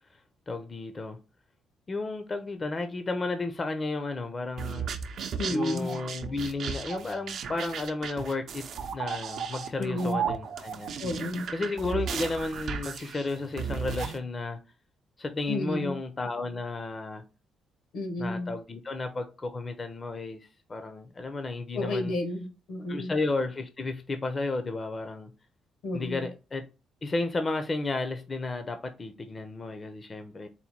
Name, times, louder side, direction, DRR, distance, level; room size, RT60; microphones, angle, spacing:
voice 1, 0.5-1.2 1.9-5.0 5.5-8.6 8.9-10.9 11.5-14.6 15.2-17.2 18.2-22.1 22.9-25.3 25.9-26.6 27.0-30.5, left 3 dB, 35° left, 0.5 m, -33 dB
sound 1, 4.6-14.2, right 7 dB, 65° right, 0.5 m, -35 dB
voice 2, 5.4-6.0 9.8-10.2 11.0-11.5 15.5-16.0 17.9-18.5 21.7-23.1 25.8-26.3, left 1 dB, 85° left, 1.3 m, -31 dB
4.1 x 2.2 x 4.3 m
cardioid pair, 90°, 0 cm